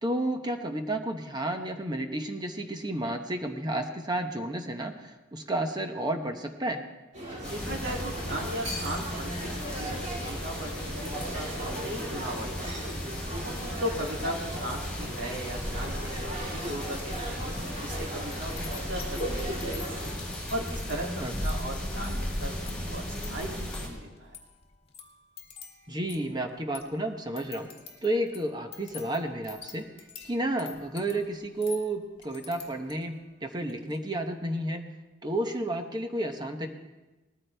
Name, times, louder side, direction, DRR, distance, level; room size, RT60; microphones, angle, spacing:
voice 1, 0.0-6.8 21.2-21.3 25.9-27.7 28.0-29.9 30.2-34.8 35.2-36.7, right 1 dB, 20° right, 5 dB, 0.9 m, -31 dB
sound 1, 7.1-20.1, right 1 dB, 40° right, 3.3 m, -38 dB
sound 2, 7.4-23.9, left 1 dB, 5° left, 4.2 m, -35 dB
voice 2, 7.5-13.0 13.4-17.5 17.8-20.1 20.5-24.4, equal, 75° right, -1 dB, 2.6 m, -37 dB
sound 3, 16.9-17.2 17.4-33.2 33.6-34.0, left 6 dB, 30° left, 1.8 m, -49 dB
19.5 x 14.0 x 3.4 m, 1.1 s
head